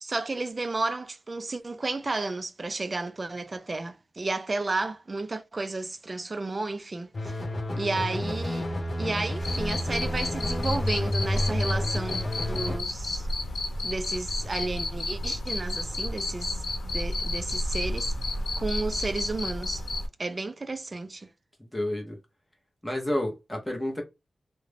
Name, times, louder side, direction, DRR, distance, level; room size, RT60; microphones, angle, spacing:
voice 1, 0.0-7.3 7.8-8.7 9.0-13.3 13.8-16.6 16.9-18.1 18.6-19.8 20.2-21.3, right 3 dB, 30° right, 0.3 m, -32 dB
sound 1, 7.1-12.8, left 1 dB, 35° left, 0.5 m, -30 dB
Cricket, 9.4-20.1, left 1 dB, 90° left, 0.7 m, -31 dB
voice 2, 21.7-22.2 22.8-24.0, left 1 dB, 5° left, 0.7 m, -30 dB
2.4 x 2.0 x 3.2 m
wide cardioid pair, 150°, 0 cm